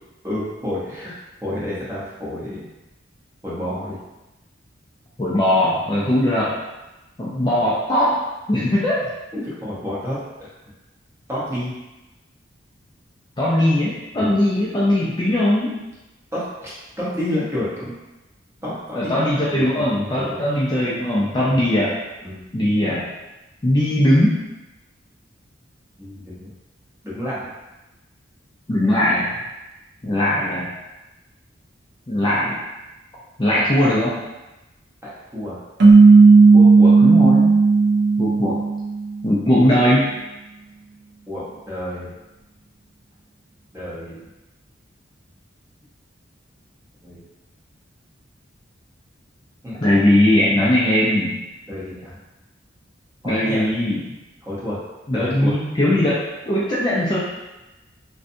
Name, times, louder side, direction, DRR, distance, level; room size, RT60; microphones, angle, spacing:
voice 1, 0.2-1.1 1.4-2.6 3.4-4.0 9.3-10.2 11.3-11.7 14.1-14.3 16.3-17.9 18.6-19.7 20.1-20.3 21.5-21.6 22.2-22.4 26.0-26.5 27.0-27.4 35.0-35.6 36.5-36.9 41.3-42.1 43.7-44.3 47.0-47.2 49.6-49.8 51.7-52.2 53.2-53.7 54.4-54.8 55.1-55.5 55.9-56.0, left 1 dB, 15° right, -8 dB, 0.6 m, -29 dB
voice 2, 5.2-6.6 7.2-9.0 13.4-15.8 18.9-21.9 22.5-23.0 23.6-24.4 28.7-29.4 30.0-30.7 32.1-32.6 33.4-34.2 37.0-37.5 38.2-38.6 39.2-40.1 49.8-51.4 53.2-54.0 55.1-57.2, left 1 dB, 25° left, -7 dB, 0.3 m, -19 dB
sound 1, 35.8-39.1, right 4 dB, 65° right, 0.4 m, -12 dB
2.5 x 2.2 x 2.6 m, 1.0 s
head